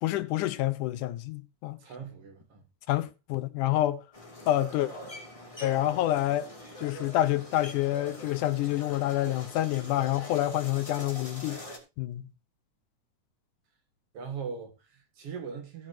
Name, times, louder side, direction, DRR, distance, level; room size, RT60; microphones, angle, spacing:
voice 1, 0.0-1.8 2.9-4.0 4.5-4.9 5.6-6.5 6.8-11.6 12.0-12.2, left 14 dB, 85° left, 2.4 m, -28 dB
voice 2, 1.8-2.6 14.1-15.9, right 6 dB, 55° right, 2.5 m, -40 dB
sound 1, 4.1-11.8, left 1 dB, 10° left, 2.2 m, -44 dB
16.0 x 8.5 x 2.8 m
omnidirectional pair, 3.5 m